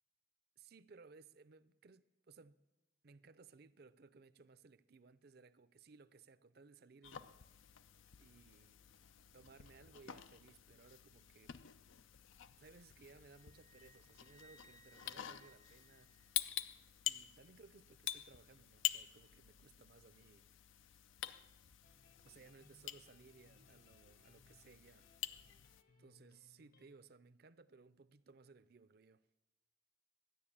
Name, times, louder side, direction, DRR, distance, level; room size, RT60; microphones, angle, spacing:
voice 1, 0.6-2.6 3.0-7.4 8.2-8.8 9.3-11.6 12.6-16.3 17.0-20.5 22.2-25.1 26.0-29.2, right 4 dB, 55° right, 0.5 m, -62 dB
sound 1, 7.0-25.8, left 12 dB, 90° left, 0.6 m, -47 dB
Wind instrument woodwind instrument, 13.3-16.8, right 1 dB, 20° left, 0.5 m, -66 dB
sound 2, 21.8-27.0, left 2 dB, 45° left, 1.0 m, -70 dB
12.5 x 10.5 x 8.6 m
head